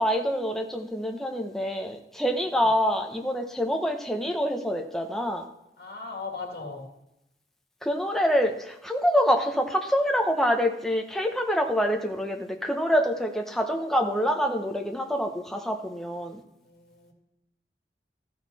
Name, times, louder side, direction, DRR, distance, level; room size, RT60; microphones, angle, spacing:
voice 1, 0.0-5.4 7.8-16.4, equal, ahead, 3 dB, 0.9 m, -26 dB
voice 2, 5.8-6.8 16.6-17.1, left 4 dB, 60° left, 0 dB, 2.0 m, -38 dB
13.5 x 6.5 x 4.1 m, 0.86 s
head